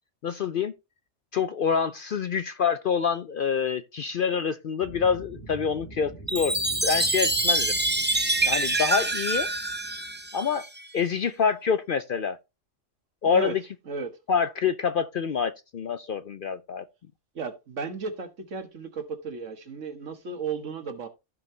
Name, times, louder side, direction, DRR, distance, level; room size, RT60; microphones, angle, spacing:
voice 1, 0.2-0.7 1.3-7.8 8.4-9.5 10.3-10.6 10.9-12.4 13.2-13.6 14.3-16.8, left 6 dB, 60° left, 0.6 m, -26 dB
sound 1, 4.8-10.4, right 2 dB, 15° left, 2.1 m, -45 dB
Chime, 6.3-10.8, right 2 dB, 15° right, 0.4 m, -26 dB
voice 2, 13.9-14.2 17.3-21.1, right 5 dB, 70° right, 1.7 m, -34 dB
15.0 x 5.3 x 2.7 m
omnidirectional pair, 1.3 m